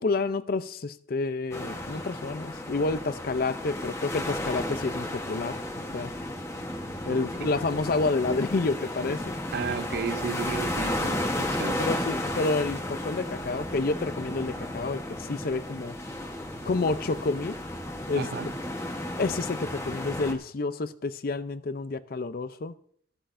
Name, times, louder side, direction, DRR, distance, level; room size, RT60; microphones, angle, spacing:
voice 1, 0.0-5.6 5.9-6.1 7.0-9.3 11.8-15.9 16.6-17.6 18.1-18.3 19.2-22.7, left 3 dB, 50° left, 0.5 m, -29 dB
sound 1, 1.5-20.3, left 1 dB, 15° left, 1.0 m, -33 dB
voice 2, 9.5-11.8 18.2-18.5, right 5 dB, 55° right, 0.5 m, -33 dB
13.5 x 12.5 x 2.6 m
head